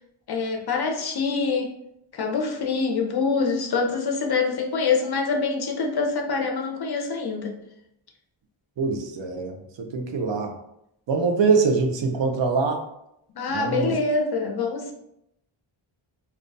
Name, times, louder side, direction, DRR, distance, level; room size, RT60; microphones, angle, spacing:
voice 1, 0.3-1.7 2.1-7.5 13.4-14.9, left 4 dB, 50° left, 2 dB, 0.5 m, -25 dB
voice 2, 8.8-10.5 11.1-12.8 13.5-14.0, right 4 dB, 60° right, 4 dB, 0.5 m, -24 dB
2.3 x 2.2 x 2.5 m, 0.79 s
wide cardioid pair, 85°, 50 cm